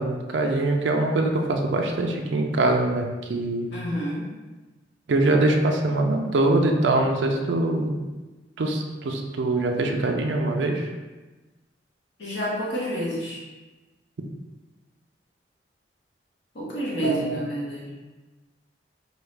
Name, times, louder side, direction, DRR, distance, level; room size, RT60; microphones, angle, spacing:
voice 1, 0.0-3.7 5.1-8.0 8.6-10.9 17.0-17.4, right 2 dB, 75° right, 2 dB, 0.5 m, -23 dB
voice 2, 3.7-4.3 12.2-13.4 16.5-18.0, equal, 80° left, -6 dB, 1.3 m, -29 dB
4.7 x 2.3 x 3.3 m, 1.2 s
head